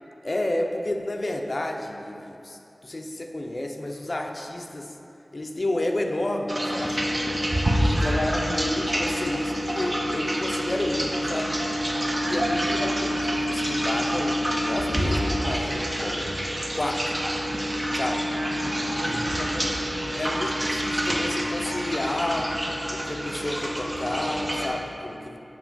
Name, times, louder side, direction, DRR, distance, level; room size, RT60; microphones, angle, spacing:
voice 1, 0.2-5.0 5.3-7.1 7.8-11.6 12.2-13.1 13.5-16.4 16.7-17.0 17.9-18.2 19.1-19.2 20.1-22.5 22.9-25.4, left 1 dB, 45° left, 2 dB, 0.5 m, -30 dB
turtle water, 6.5-24.7, equal, 25° right, 0.9 m, -27 dB
voice 2, 7.9-8.5 12.2-12.7 18.3-20.6, right 1 dB, 85° right, -4 dB, 1.2 m, -36 dB
7.6 x 3.3 x 6.0 m, 2.8 s
wide cardioid pair, 70°, 0 cm